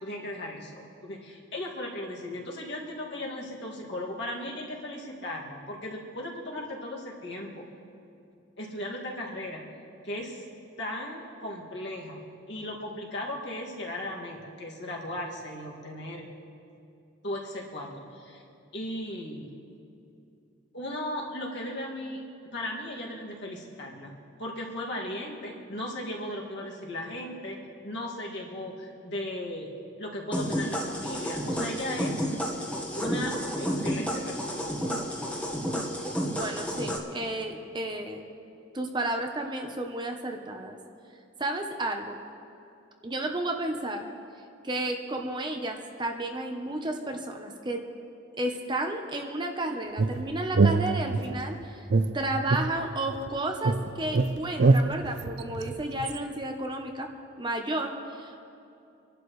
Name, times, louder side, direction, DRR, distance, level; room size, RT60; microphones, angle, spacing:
voice 1, 0.0-7.6 8.6-9.6 10.0-10.5 10.8-12.2 12.5-16.2 17.2-18.4 18.7-19.5 20.7-22.2 22.5-24.1 24.4-27.6 27.8-29.7 30.0-32.3 32.9-34.8, left 1 dB, 55° left, -3 dB, 2.2 m, -37 dB
sound 1, 30.3-37.0, equal, 5° left, 1.3 m, -31 dB
voice 2, 36.3-38.2 38.7-40.8 41.4-42.2 43.0-44.1 44.6-47.8 48.4-51.8 52.1-57.1 57.4-58.5, right 1 dB, 20° right, 3 dB, 0.8 m, -32 dB
sound 2, 50.0-51.4 51.9-53.3 53.6-56.2, right 3 dB, 55° right, 0.4 m, -25 dB
27.5 x 11.5 x 3.2 m, 2.6 s
head